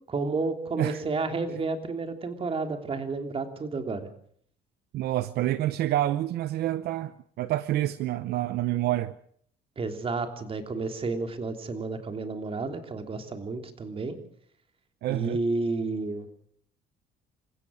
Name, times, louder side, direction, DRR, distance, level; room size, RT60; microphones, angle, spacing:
voice 1, 0.0-4.1 9.8-14.2 15.1-16.3, right 3 dB, 35° right, 6 dB, 3.2 m, -31 dB
voice 2, 4.9-7.1 7.4-9.1 15.0-15.4, right 14 dB, 70° right, 14 dB, 0.8 m, -27 dB
28.0 x 16.0 x 6.4 m, 0.63 s
cardioid pair, 110°, 17 cm